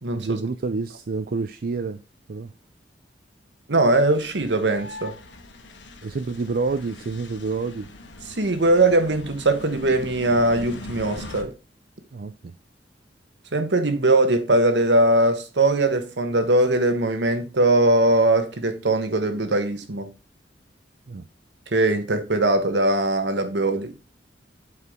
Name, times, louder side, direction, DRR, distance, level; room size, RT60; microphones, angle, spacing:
voice 1, 0.1-2.0 2.3-2.5 6.0-7.9 12.1-12.5 21.1-21.3, right 4 dB, 55° right, 0.5 m, -28 dB
voice 2, 3.7-5.1 8.4-11.5 13.5-20.1 21.7-23.9, right 2 dB, 75° right, 1.3 m, -20 dB
sound 1, 4.1-11.4, left 2 dB, 90° left, 1.4 m, -41 dB
8.1 x 4.7 x 3.7 m
head